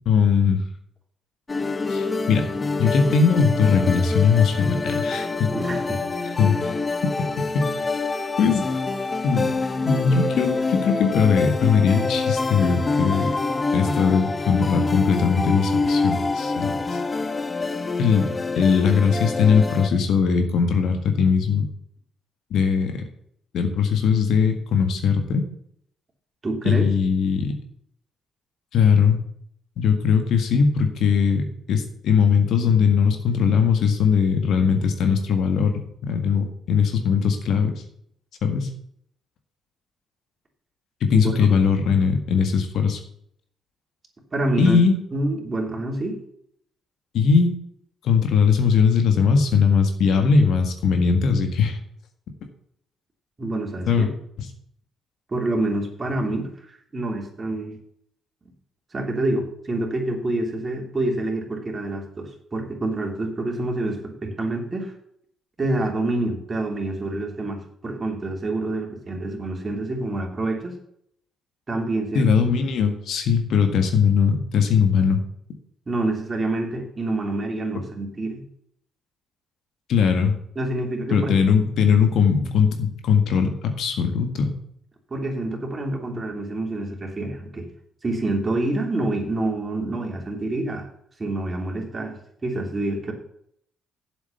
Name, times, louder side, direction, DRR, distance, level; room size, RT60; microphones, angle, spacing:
voice 1, 0.1-0.6 1.9-2.5 2.8-5.5 6.4-6.8 8.4-8.8 9.2-13.3 13.7-17.0 18.0-18.3 18.6-21.7 22.5-22.9 23.5-25.4 26.7-27.6 28.7-29.2 29.8-37.8 38.4-38.7 41.0-43.0 44.6-45.0 47.1-47.5 48.0-51.8 53.9-54.1 72.2-75.2 79.9-80.4 81.1-84.6, left 6 dB, 70° left, 6 dB, 1.8 m, -20 dB
sound 1, 1.5-19.9, left 3 dB, 30° left, 0.9 m, -26 dB
voice 2, 5.5-6.0 26.4-26.9 41.1-41.4 44.3-44.8 45.1-46.2 53.4-54.1 55.3-57.8 58.9-64.9 65.6-70.7 71.7-72.3 75.9-78.4 80.5-81.3 85.1-87.6 88.0-90.9 91.2-93.1, right 2 dB, 35° right, 1 dB, 3.2 m, -27 dB
7.8 x 7.3 x 7.0 m, 0.69 s
supercardioid pair, 60°, 0 cm